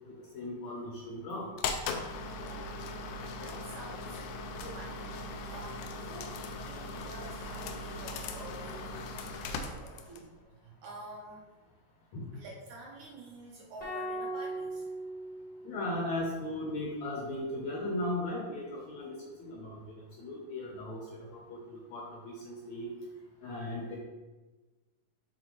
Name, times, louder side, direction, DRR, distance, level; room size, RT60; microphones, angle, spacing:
voice 1, 0.3-1.5 12.1-12.3 15.6-19.8 20.2-22.9 23.4-24.0, left 1 dB, 70° left, -2 dB, 1.8 m, -37 dB
sound 1, 1.6-10.3, left 3 dB, 85° left, 1.7 m, -39 dB
voice 2, 2.4-2.8 3.3-4.3 4.5-10.3 10.5-11.5 12.3-14.9, right 2 dB, 75° right, -3 dB, 1.9 m, -49 dB
sound 2, 13.8-16.1, right 1 dB, 50° left, 0.7 m, -39 dB
7.8 x 4.0 x 3.0 m, 1.2 s
omnidirectional pair, 4.0 m